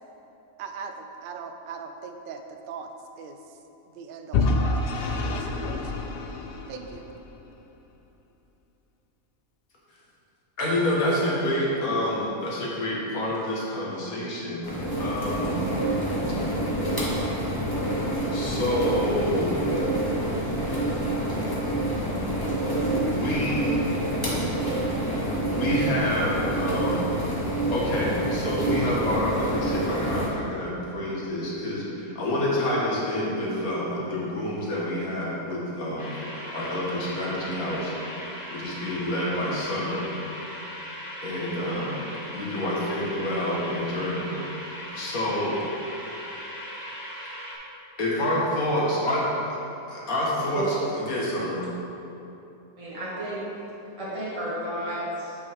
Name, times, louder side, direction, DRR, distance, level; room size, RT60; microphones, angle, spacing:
voice 1, 0.6-2.9 3.2-3.6 3.9-6.1 6.7-7.0, right 5 dB, 70° right, 6 dB, 0.5 m, -40 dB
Vehicle / Engine, 4.3-7.3, left 3 dB, 65° left, 0.6 m, -27 dB
voice 2, 10.6-15.6 18.3-19.7 23.1-23.8 25.5-27.1 27.7-36.1 36.5-37.9 38.5-40.1 41.2-42.0 42.3-44.4 44.9-45.6 48.0-49.6 49.9-51.6, left 1 dB, 80° left, -5 dB, 2.0 m, -28 dB
sound 1, 14.6-30.3, right 1 dB, 15° left, 1.1 m, -27 dB
sound 2, 36.0-47.5, equal, 45° left, 1.5 m, -38 dB
voice 3, 52.8-53.5 54.0-55.4, right 1 dB, 25° right, -9 dB, 1.4 m, -32 dB
8.6 x 6.2 x 3.6 m, 2.9 s
omnidirectional pair, 1.5 m